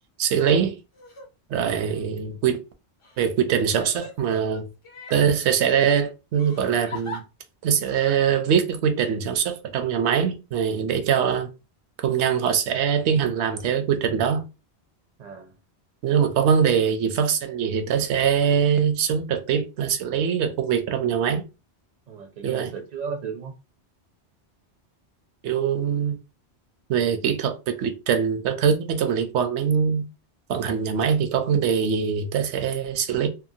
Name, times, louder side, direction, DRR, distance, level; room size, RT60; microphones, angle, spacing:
voice 1, 0.2-0.8 1.5-2.6 3.2-4.7 5.1-7.2 7.6-11.5 12.0-14.4 16.0-21.4 22.4-22.7 25.4-26.2 26.9-30.0 30.5-33.3, right 7 dB, 85° right, 0.9 m, -23 dB
Crying sobbing, 0.9-1.3 1.9-2.0 3.0-5.2 6.4-7.2 7.9-8.2, left 2 dB, 35° left, 0.6 m, -40 dB
voice 2, 15.2-15.5 22.1-23.6, right 6 dB, 55° right, 0.5 m, -35 dB
2.8 x 2.1 x 2.6 m
omnidirectional pair, 1.1 m